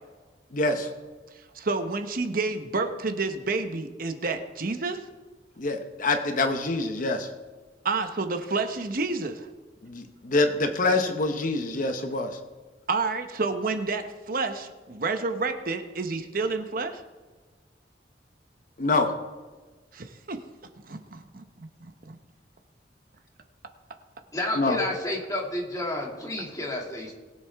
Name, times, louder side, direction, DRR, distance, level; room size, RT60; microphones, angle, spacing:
voice 1, 0.5-0.9 5.6-7.3 9.8-12.4 18.8-19.1 24.6-24.8, left 2 dB, 50° left, 6 dB, 0.9 m, -25 dB
voice 2, 1.5-5.0 7.8-9.5 12.9-17.0 19.9-20.4 20.8-21.7, right 3 dB, 55° right, 7 dB, 0.9 m, -29 dB
voice 3, 24.3-27.1, left 1 dB, 20° left, -2 dB, 2.4 m, -30 dB
21.0 x 7.7 x 3.5 m, 1.3 s
head